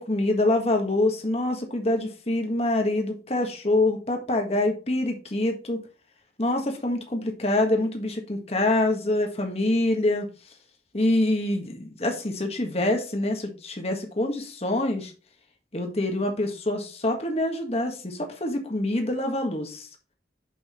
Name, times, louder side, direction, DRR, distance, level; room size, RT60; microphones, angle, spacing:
voice 1, 0.0-5.8 6.4-10.3 10.9-15.1 15.7-19.9, left 1 dB, 35° left, 3 dB, 1.6 m, -25 dB
6.3 x 5.6 x 4.3 m, 0.34 s
head